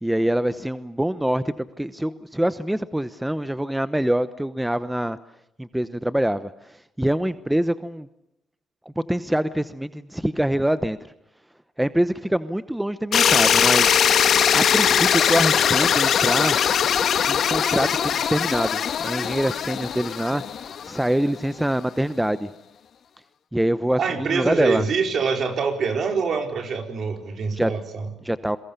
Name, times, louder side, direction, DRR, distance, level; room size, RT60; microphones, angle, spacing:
voice 1, 0.0-5.2 5.6-8.1 9.1-11.0 11.8-14.0 14.5-16.6 17.3-20.4 20.8-22.5 23.5-24.8 27.5-27.7 28.2-28.6, right 1 dB, 5° right, 13 dB, 0.9 m, -24 dB
sound 1, 13.1-21.1, left 8 dB, 60° left, 1.4 m, -20 dB
voice 2, 24.0-28.1, right 5 dB, 55° right, 5 dB, 4.4 m, -25 dB
29.5 x 22.5 x 6.8 m, 0.85 s
cardioid pair, 90°, 0 cm